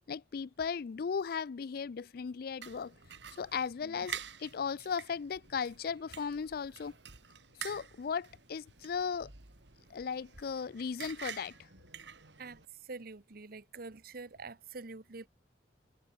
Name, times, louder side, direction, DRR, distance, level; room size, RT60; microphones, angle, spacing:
voice 1, 0.1-2.9 3.4-6.9 7.6-9.3 9.9-11.5, left 6 dB, 60° left, 0.4 m, -36 dB
sound 1, 2.6-12.7, right 7 dB, 85° right, 2.9 m, -48 dB
voice 2, 12.2-15.3, right 3 dB, 55° right, 1.1 m, -46 dB
head